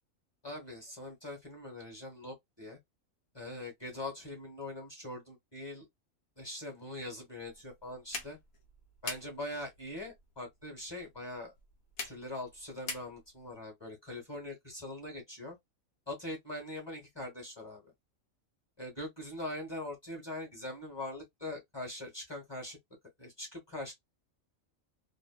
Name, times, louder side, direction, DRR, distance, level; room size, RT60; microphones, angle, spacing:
voice 1, 0.4-2.8 3.3-5.9 6.4-8.4 9.0-11.5 12.0-15.6 16.1-17.8 18.8-22.8 23.2-23.9, left 1 dB, 20° left, 1.2 m, -42 dB
sound 1, 7.4-13.5, left 4 dB, 90° left, 1.3 m, -46 dB
2.7 x 2.4 x 2.3 m
omnidirectional pair, 1.4 m